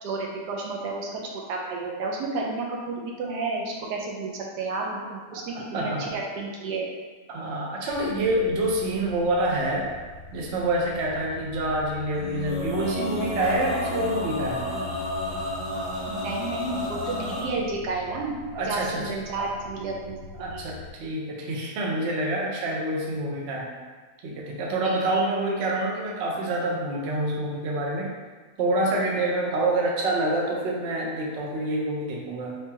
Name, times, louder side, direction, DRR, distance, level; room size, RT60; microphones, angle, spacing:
voice 1, 0.0-6.9 16.1-18.4 18.7-20.2 20.5-20.6 24.7-25.3, right 3 dB, 85° right, -1 dB, 1.2 m, -31 dB
voice 2, 5.3-6.1 7.3-9.9 10.3-14.7 18.5-19.1 20.4-23.7 24.2-28.1 28.6-32.6, right 1 dB, 60° right, -2 dB, 0.7 m, -27 dB
sound 1, 7.9-20.9, left 3 dB, 70° left, 1.0 m, -43 dB
Male singing, 12.1-17.5, left 1 dB, 30° left, 0.7 m, -31 dB
3.3 x 3.2 x 2.8 m, 1.4 s
omnidirectional pair, 1.8 m